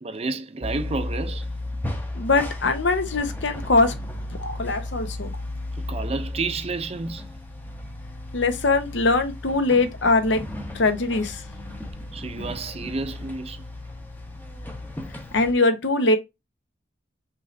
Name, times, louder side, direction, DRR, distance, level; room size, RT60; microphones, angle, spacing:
voice 1, 0.0-1.5 5.8-7.3 12.1-13.6, right 3 dB, 30° right, 0.5 m, -30 dB
sound 1, 0.6-15.5, left 1 dB, 10° left, 0.7 m, -34 dB
voice 2, 2.1-4.0 4.4-5.3 8.3-10.4 10.7-11.4 15.3-16.2, left 3 dB, 70° left, 0.9 m, -22 dB
5.4 x 3.2 x 2.6 m
head